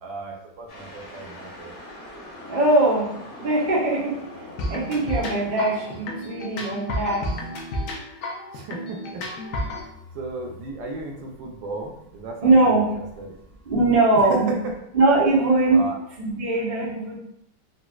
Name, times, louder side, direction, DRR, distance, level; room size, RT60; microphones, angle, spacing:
voice 1, 0.0-1.7 8.5-9.2 10.1-13.4 14.2-14.7 15.7-15.9, right 3 dB, 75° right, 0 dB, 1.3 m, -34 dB
sound 1, 0.7-7.0, left 1 dB, 45° left, 1.4 m, -42 dB
voice 2, 2.4-3.1 3.4-4.2 4.7-7.3 12.4-12.9 13.6-14.5 14.9-15.9 16.2-17.2, right 2 dB, 50° right, -6 dB, 0.5 m, -21 dB
sound 2, 4.6-9.9, left 1 dB, 75° left, 0.8 m, -31 dB
4.0 x 2.4 x 2.3 m, 0.78 s
omnidirectional pair, 2.2 m